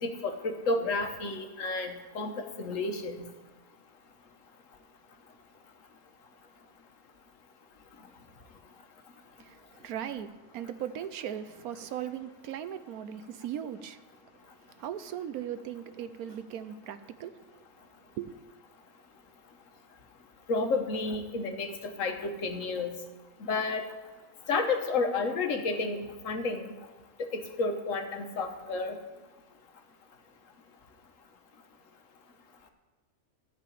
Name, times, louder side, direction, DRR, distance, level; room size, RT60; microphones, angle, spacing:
voice 1, 0.0-3.3 20.5-21.7 22.0-23.0 23.5-23.8 24.5-26.7 27.3-29.0, left 3 dB, 60° left, 1.4 m, -31 dB
voice 2, 9.4-14.0 14.8-17.3 18.2-18.4, right 10 dB, 80° right, 1.1 m, -38 dB
14.0 x 4.9 x 8.5 m
omnidirectional pair, 1.6 m